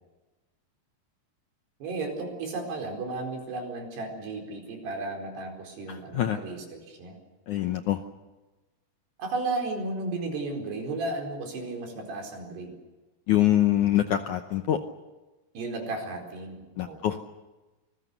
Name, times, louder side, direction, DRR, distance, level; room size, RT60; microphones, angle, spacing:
voice 1, 1.8-7.2 9.2-12.7 15.5-17.0, right 3 dB, 85° right, 3 dB, 6.5 m, -34 dB
voice 2, 5.9-6.4 7.5-8.0 13.3-14.8 16.8-17.2, left 12 dB, 75° left, 7 dB, 1.8 m, -24 dB
27.5 x 20.5 x 6.8 m, 1.1 s
omnidirectional pair, 4.6 m